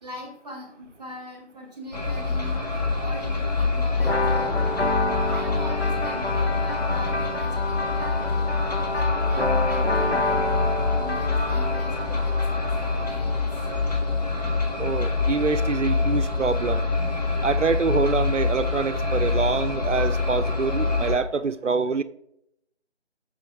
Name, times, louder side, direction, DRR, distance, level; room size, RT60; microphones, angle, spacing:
voice 1, 0.0-4.6 5.2-8.5 8.9-12.4 13.0-13.4, equal, 5° left, -7 dB, 0.8 m, -41 dB
sound 1, 1.9-21.2, left 3 dB, 35° left, 1.1 m, -25 dB
sound 2, 4.0-13.6, left 2 dB, 65° left, 1.1 m, -29 dB
voice 2, 14.8-16.9 17.4-22.0, right 4 dB, 90° right, 11 dB, 0.6 m, -25 dB
6.3 x 5.7 x 3.5 m, 0.74 s
figure-of-eight pair, 160°, 35 cm